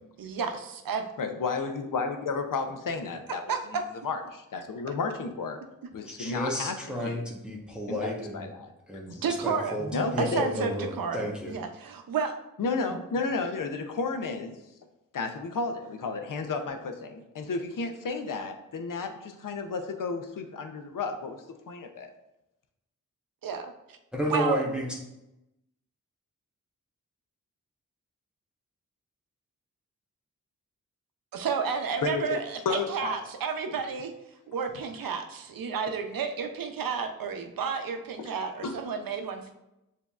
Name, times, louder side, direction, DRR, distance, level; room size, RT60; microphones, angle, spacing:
voice 1, 0.2-1.1 3.5-3.8 9.1-9.8 10.2-12.4 23.4-24.0 24.3-24.6 31.3-34.1 34.5-39.5, right 6 dB, 80° right, 6 dB, 0.6 m, -31 dB
voice 2, 1.2-3.4 4.0-5.6 5.9-7.2 7.9-8.7 9.1-9.2 9.9-10.4 12.6-14.6 15.1-22.1 32.0-32.4 32.6-33.2 33.7-33.8 38.2-38.3 38.6-38.8, left 4 dB, 70° left, 7 dB, 0.6 m, -32 dB
voice 3, 6.1-8.5 8.9-11.6 24.1-25.0, equal, 5° right, -3 dB, 1.0 m, -32 dB
6.9 x 2.7 x 2.4 m, 0.91 s
cardioid pair, 45°, 34 cm